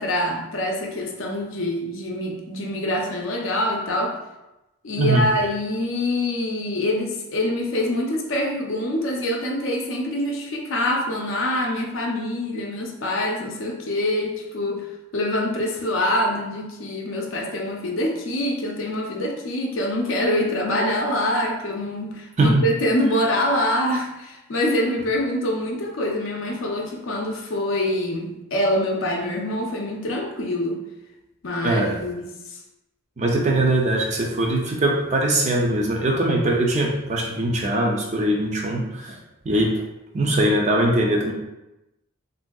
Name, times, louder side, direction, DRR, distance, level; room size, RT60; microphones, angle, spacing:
voice 1, 0.0-4.2 4.8-14.9 15.1-30.8 31.4-32.6, left 1 dB, 60° left, 0 dB, 0.5 m, -25 dB
voice 2, 5.0-5.3 22.4-22.6 31.6-31.9 33.2-39.2 39.4-39.7 40.1-41.3, right 1 dB, 30° right, 0 dB, 0.4 m, -21 dB
3.4 x 2.6 x 2.2 m, 0.96 s
head